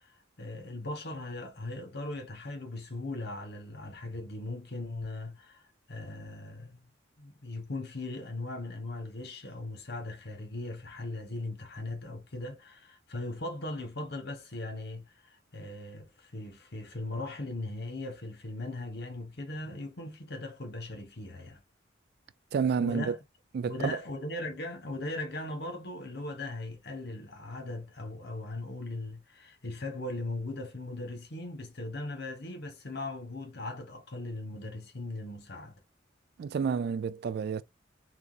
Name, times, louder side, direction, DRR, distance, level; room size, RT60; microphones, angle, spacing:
voice 1, 0.0-5.6 5.9-6.8 7.2-21.6 22.8-23.2 23.7-35.7, left 2 dB, 60° left, 1.3 m, -39 dB
voice 2, 22.5-23.2 23.5-23.7 36.4-37.6, right 6 dB, 55° right, 0.3 m, -29 dB
3.8 x 2.9 x 2.5 m
head